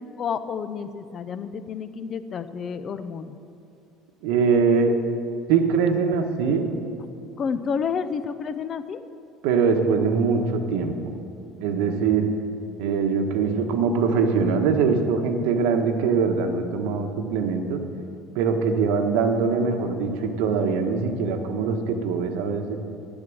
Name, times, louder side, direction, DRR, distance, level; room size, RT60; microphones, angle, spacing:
voice 1, 0.0-3.4 7.4-9.0, left 6 dB, 30° left, 12 dB, 0.5 m, -30 dB
voice 2, 4.2-4.9 5.5-6.7 9.4-10.9 11.6-12.3 12.8-17.8 18.3-22.8, right 5 dB, 85° right, 5 dB, 1.3 m, -22 dB
10.5 x 10.0 x 7.9 m, 2.6 s
cardioid pair, 175°, 0 cm